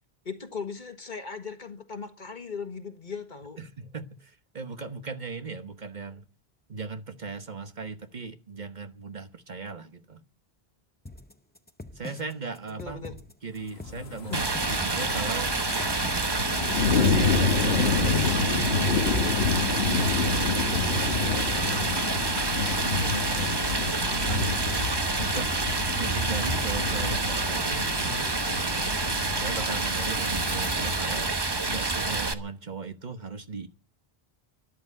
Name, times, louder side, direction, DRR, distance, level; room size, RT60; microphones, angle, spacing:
voice 1, 0.3-3.6 12.7-13.1 14.3-14.8 16.8-18.3, left 5 dB, 50° left, 1.7 m, -37 dB
voice 2, 3.6-6.3 6.7-10.2 11.9-13.1 13.4-15.6 17.0-19.2 19.7-22.0 22.5-24.5 25.2-25.6 26.0-28.1 28.6-29.0 29.3-31.4 31.7-33.7, right 4 dB, 50° right, 1.2 m, -38 dB
sound 1, 11.1-19.0, left 1 dB, 10° left, 0.7 m, -44 dB
sound 2, 13.7-31.8 32.3-32.4, left 5 dB, 85° left, 1.4 m, -29 dB
Stream, 14.3-32.3, right 3 dB, 25° right, 0.9 m, -28 dB
13.0 x 11.0 x 9.7 m
omnidirectional pair, 1.0 m